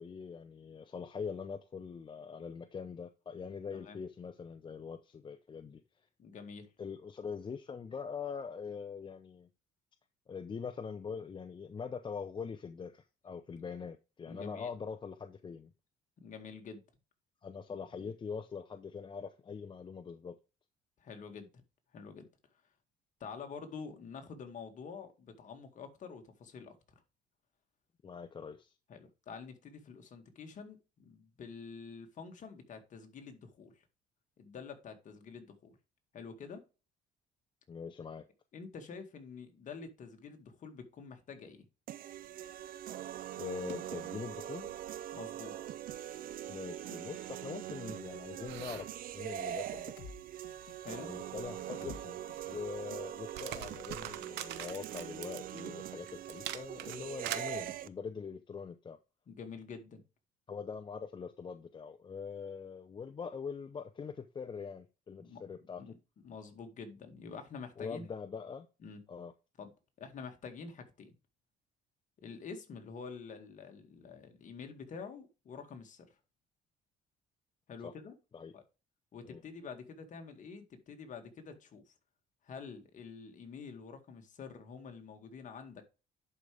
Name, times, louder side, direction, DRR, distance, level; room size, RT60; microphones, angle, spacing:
voice 1, 0.0-5.8 6.8-9.5 10.3-15.7 17.4-20.4 28.0-28.7 37.7-38.3 43.4-44.7 46.5-48.9 49.1-49.9 51.0-52.2 52.5-59.0 60.5-65.8 67.8-68.7 69.1-69.3 77.8-77.9 78.3-78.5 79.3-79.4, left 6 dB, 30° left, 0.7 m, -43 dB
voice 2, 6.2-6.7 13.5-13.6 14.3-14.7 16.2-16.8 18.0-18.1 21.0-21.5 21.9-22.3 23.2-26.8 28.9-33.8 34.4-35.8 36.1-36.6 38.5-41.6 45.1-45.8 50.8-51.1 59.3-60.0 65.2-66.0 66.2-68.1 68.8-69.0 69.6-69.7 70.0-71.1 72.2-76.2 77.7-78.1 78.5-78.6 79.1-81.9 82.4-85.8, left 5 dB, 50° left, 2.0 m, -47 dB
sound 1, 41.9-57.9, right 11 dB, 60° right, 0.6 m, -43 dB
sound 2, 42.1-57.8, right 12 dB, 85° right, 1.0 m, -48 dB
sound 3, 49.5-50.2 50.4-50.8 51.3-52.0 52.3-52.6, left 7 dB, 90° left, 1.4 m, -51 dB
11.0 x 5.0 x 3.4 m
cardioid pair, 110°, 17 cm